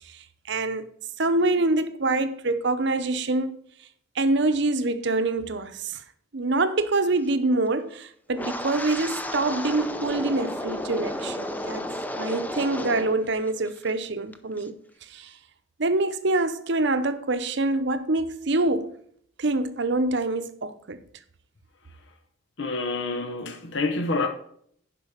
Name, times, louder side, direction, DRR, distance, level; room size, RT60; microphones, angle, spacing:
voice 1, 0.5-0.9 1.2-3.6 4.2-6.0 6.3-11.9 12.2-15.3 15.8-19.0 19.4-21.0, right 2 dB, 60° right, 0.8 m, -25 dB
Wind, 8.3-13.2 13.5-13.9 14.3-14.6, left 1 dB, 10° left, 0.6 m, -32 dB
voice 2, 22.6-24.3, left 3 dB, 60° left, 0.9 m, -27 dB
11.5 x 5.0 x 5.1 m
head